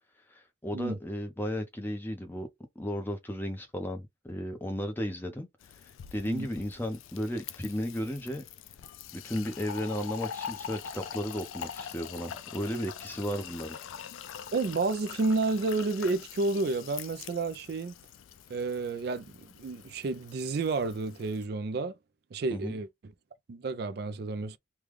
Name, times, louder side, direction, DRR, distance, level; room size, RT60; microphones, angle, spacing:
voice 1, 0.3-2.5 2.8-5.5 6.1-8.4 9.1-13.8 22.5-22.7, equal, 10° left, 0.7 m, -34 dB
Fill (with liquid), 5.6-21.5, left 8 dB, 85° left, 0.4 m, -44 dB
voice 2, 14.5-17.9 18.5-22.0 22.3-23.1 23.5-24.6, right 3 dB, 55° right, 0.3 m, -31 dB
3.4 x 2.3 x 3.2 m
head